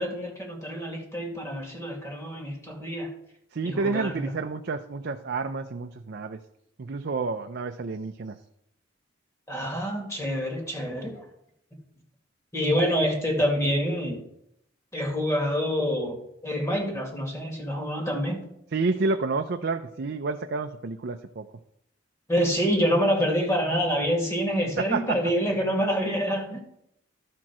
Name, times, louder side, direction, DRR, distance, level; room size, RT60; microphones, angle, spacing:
voice 1, 0.0-3.1 3.6-4.3 9.5-11.2 12.5-14.2 14.9-18.5 22.3-26.6, equal, 15° left, 0 dB, 2.0 m, -27 dB
voice 2, 3.5-6.4 6.8-8.4 18.7-21.5 24.8-25.2 25.6-25.8, right 3 dB, 55° right, 6 dB, 0.5 m, -29 dB
12.5 x 4.5 x 6.0 m, 0.78 s
head